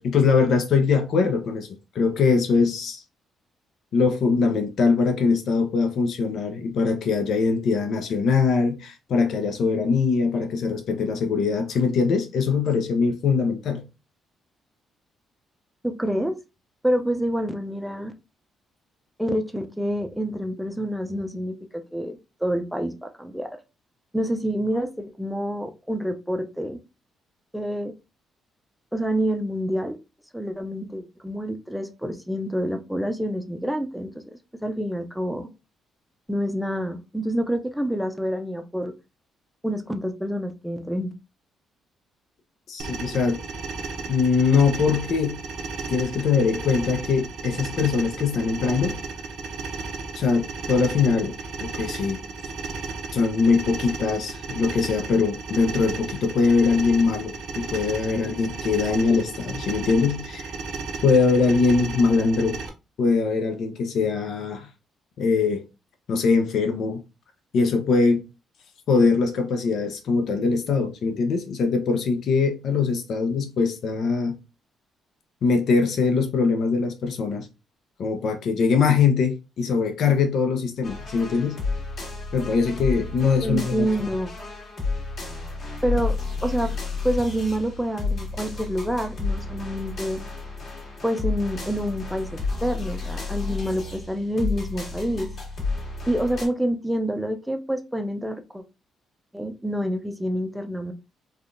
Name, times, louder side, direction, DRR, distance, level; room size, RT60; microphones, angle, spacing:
voice 1, 0.0-1.7 1.9-3.0 3.9-13.8 42.7-43.4 44.1-45.4 45.9-49.0 50.2-51.3 51.6-52.2 53.1-60.4 61.0-62.6 63.0-64.7 65.2-65.6 66.1-67.0 67.5-68.2 68.9-74.4 75.4-77.5 78.0-81.6 82.3-83.9, left 5 dB, 65° left, 0.6 m, -22 dB
voice 2, 15.8-16.4 16.8-18.1 19.2-23.5 24.1-26.8 27.5-27.9 28.9-30.0 30.3-35.5 36.3-38.9 39.6-41.1 83.4-84.3 85.8-86.7 87.0-90.2 91.0-95.3 96.1-98.6 99.3-100.9, equal, 5° right, 0.5 m, -27 dB
sound 1, 42.8-62.7, right 4 dB, 80° right, 0.7 m, -34 dB
sound 2, 80.8-96.5, left 3 dB, 50° left, 1.4 m, -31 dB
3.4 x 2.3 x 2.5 m
cardioid pair, 90°, 0 cm